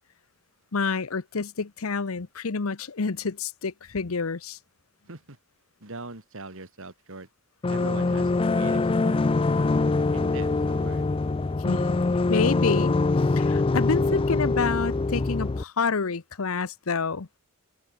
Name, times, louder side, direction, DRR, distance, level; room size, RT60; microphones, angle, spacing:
voice 1, 0.7-4.6 11.6-12.0 12.3-13.0 13.4-17.3, left 4 dB, 70° left, 0.8 m, -28 dB
voice 2, 5.1-5.4 5.8-7.3 7.7-9.2 9.5-11.1, right 2 dB, 65° right, 3.2 m, -41 dB
sound 1, 7.6-15.6, left 3 dB, 25° left, 0.4 m, -24 dB
open air
head